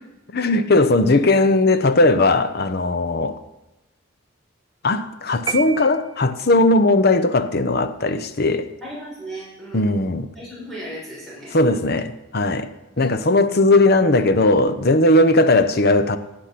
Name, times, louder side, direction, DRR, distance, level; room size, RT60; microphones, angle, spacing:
voice 1, 0.3-3.4 4.8-8.7 9.7-10.3 11.5-12.7 13.0-16.2, left 2 dB, 50° left, 11 dB, 0.8 m, -18 dB
sound 1, 5.5-6.7, right 6 dB, 20° right, 0.4 m, -30 dB
voice 2, 8.8-9.9 10.3-11.5, right 1 dB, ahead, -7 dB, 6.3 m, -36 dB
17.0 x 8.0 x 5.9 m, 1.0 s
head